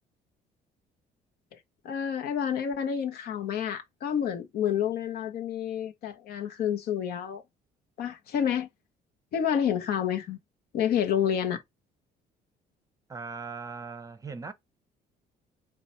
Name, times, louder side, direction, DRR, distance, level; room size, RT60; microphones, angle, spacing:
voice 1, 1.8-7.4 8.0-8.7 9.3-10.4 10.7-11.6, left 8 dB, 65° left, 0.8 m, -29 dB
voice 2, 13.1-14.5, right 4 dB, 20° right, 0.7 m, -39 dB
3.9 x 2.2 x 4.2 m
cardioid pair, 110°, 17 cm